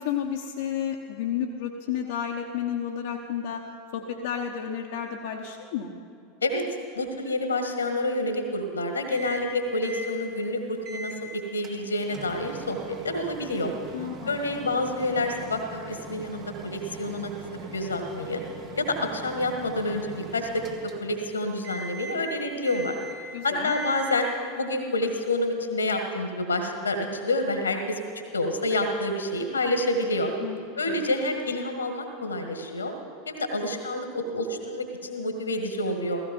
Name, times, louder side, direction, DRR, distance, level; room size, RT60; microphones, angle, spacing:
voice 1, 0.0-3.6 3.9-5.9 13.9-14.4 23.3-23.7 30.4-30.6 30.9-31.0, left 8 dB, 65° left, 0 dB, 1.0 m, -31 dB
voice 2, 7.0-13.7 14.3-18.4 18.8-20.6 21.0-23.0 23.4-24.3 24.6-28.0 28.3-30.3 30.8-32.9 33.3-36.2, left 2 dB, 85° left, 5 dB, 1.8 m, -28 dB
Microwave oven, 9.1-9.5 9.8-10.1 10.8-11.2 11.6-21.3 21.6-22.3 22.6-23.3 23.6-24.3, right 3 dB, 45° right, 2.1 m, -41 dB
16.0 x 15.0 x 5.4 m, 2.4 s
figure-of-eight pair, 85°, 0 cm